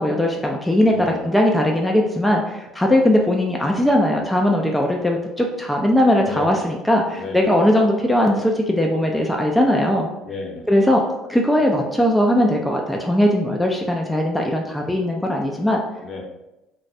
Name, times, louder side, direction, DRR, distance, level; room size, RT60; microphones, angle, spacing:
voice 1, 0.0-0.9 1.2-10.1 10.7-11.0 11.3-15.8, left 1 dB, 5° left, 0 dB, 0.3 m, -19 dB
voice 2, 0.9-1.3 6.2-6.7 7.1-7.5 10.2-10.7 16.0-16.2, left 3 dB, 50° left, 0 dB, 0.6 m, -32 dB
2.2 x 2.1 x 2.6 m, 0.94 s
supercardioid pair, 80°, 0 cm